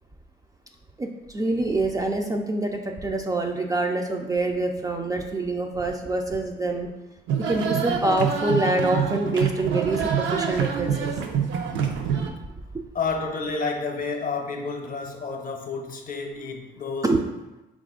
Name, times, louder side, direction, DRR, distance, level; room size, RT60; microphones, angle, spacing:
voice 1, 1.0-6.9 7.4-11.1 17.0-17.2, right 2 dB, 20° right, 2 dB, 0.3 m, -26 dB
sound 1, 7.3-12.3, right 7 dB, 70° right, 0.5 m, -26 dB
voice 2, 12.9-17.2, left 4 dB, 45° left, 3 dB, 0.7 m, -30 dB
4.1 x 2.4 x 3.7 m, 1.0 s
cardioid pair, 90°, 20 cm